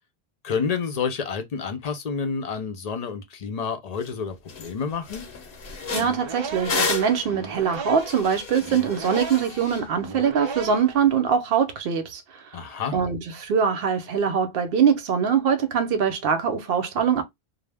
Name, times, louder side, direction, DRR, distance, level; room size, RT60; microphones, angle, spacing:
voice 1, 0.4-5.3 12.5-13.0, left 6 dB, 50° left, 0.6 m, -29 dB
sound 1, 4.0-4.1 4.5-4.7 5.0-9.8, left 4 dB, 85° left, 1.0 m, -32 dB
sound 2, 5.8-11.1, right 4 dB, 50° right, 0.3 m, -36 dB
voice 2, 5.9-12.5 12.9-17.2, right 7 dB, 70° right, 0.8 m, -23 dB
2.3 x 2.0 x 3.3 m
omnidirectional pair, 1.0 m